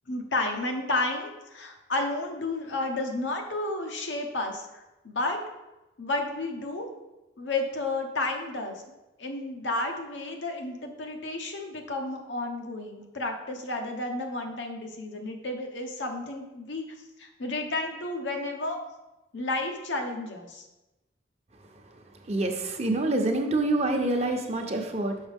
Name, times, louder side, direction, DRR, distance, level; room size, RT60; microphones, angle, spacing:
voice 1, 0.1-5.4 6.0-6.9 7.4-8.8 9.2-16.8 17.2-18.8 19.3-20.6, left 2 dB, 90° left, 3 dB, 1.0 m, -32 dB
voice 2, 22.2-25.2, right 2 dB, 35° right, 4 dB, 0.7 m, -26 dB
6.3 x 5.6 x 3.5 m, 1.0 s
head